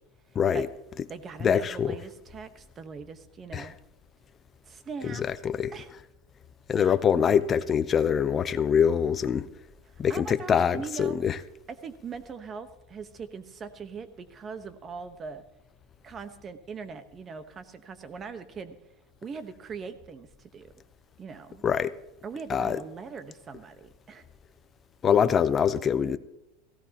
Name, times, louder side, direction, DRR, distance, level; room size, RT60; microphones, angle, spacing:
voice 1, 0.3-0.7 1.4-2.0 3.5-3.7 5.1-5.7 6.7-9.5 10.0-11.4 21.6-22.0 22.5-22.8 25.0-26.2, left 7 dB, 25° left, 0.6 m, -24 dB
voice 2, 1.1-3.8 4.7-5.2 5.7-5.9 6.8-7.0 10.1-11.2 11.8-15.4 16.0-18.8 19.2-20.7 21.2-21.6 22.2-24.3, right 5 dB, 25° right, 1.1 m, -41 dB
17.5 x 16.0 x 2.9 m
supercardioid pair, 140°, 0 cm